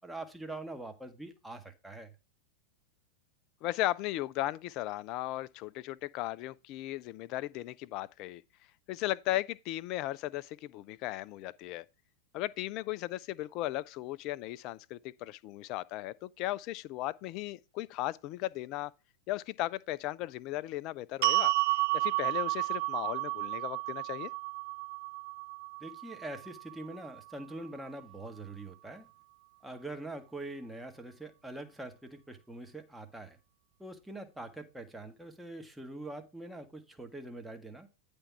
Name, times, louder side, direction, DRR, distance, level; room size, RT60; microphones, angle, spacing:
voice 1, 0.0-2.1 25.8-29.1 29.6-33.4 33.8-37.9, right 2 dB, 5° right, 1.1 m, -44 dB
voice 2, 3.6-8.4 8.9-11.8 12.3-18.9 19.3-21.5 21.9-24.3, left 16 dB, 40° left, 0.3 m, -36 dB
sound 1, 21.2-27.4, right 22 dB, 50° right, 0.3 m, -32 dB
9.9 x 3.5 x 5.6 m
figure-of-eight pair, 90°, 0 cm